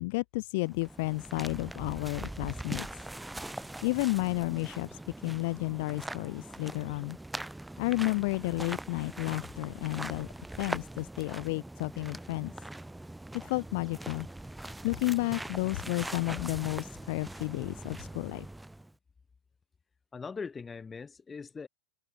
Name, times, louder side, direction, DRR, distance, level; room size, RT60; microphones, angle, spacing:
voice 1, 0.0-3.0 3.8-7.2 7.8-10.3 10.6-12.5 13.4-14.3 14.8-18.4, left 24 dB, 50° left, 0.6 m, -32 dB
sound 1, 0.7-18.9, right 1 dB, 5° right, 1.4 m, -42 dB
voice 2, 20.1-21.7, left 5 dB, 15° left, 6.1 m, -41 dB
figure-of-eight pair, 90°, 0 cm